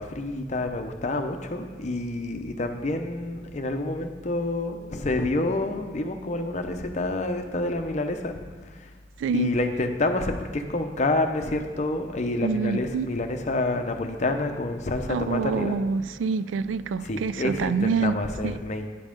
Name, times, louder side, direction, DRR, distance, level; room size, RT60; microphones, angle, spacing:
voice 1, 0.0-8.4 8.8-8.9 9.3-15.8 17.0-18.9, left 2 dB, 40° left, 6 dB, 0.7 m, -28 dB
voice 2, 9.2-9.5 12.4-13.1 15.1-18.2 18.4-18.6, right 5 dB, 85° right, 15 dB, 0.3 m, -26 dB
10.0 x 5.3 x 5.2 m, 1.5 s
head